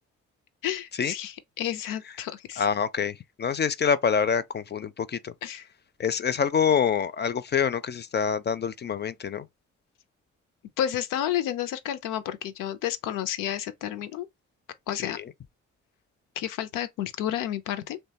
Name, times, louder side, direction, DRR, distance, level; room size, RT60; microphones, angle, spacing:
voice 1, 0.6-2.7 5.4-5.6 10.8-14.3 14.9-15.2 16.4-18.0, left 11 dB, 85° left, 0.5 m, -31 dB
voice 2, 2.6-5.3 6.0-9.5 15.0-15.3, left 7 dB, 35° left, 0.4 m, -26 dB
3.0 x 2.2 x 2.7 m
supercardioid pair, 50°, 31 cm